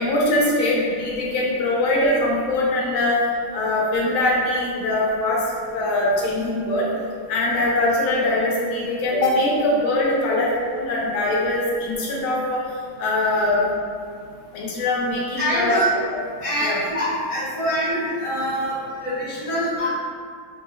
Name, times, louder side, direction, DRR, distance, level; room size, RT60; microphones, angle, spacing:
voice 1, 0.0-3.2 3.5-5.4 5.7-6.8 7.3-12.6 13.0-13.7 14.5-15.8 16.1-16.2 16.6-16.8, left 2 dB, 85° left, -4 dB, 1.6 m, -22 dB
voice 2, 15.4-15.9 16.4-19.9, equal, 20° left, -10 dB, 1.1 m, -25 dB
6.0 x 3.1 x 2.2 m, 2.1 s
omnidirectional pair, 2.1 m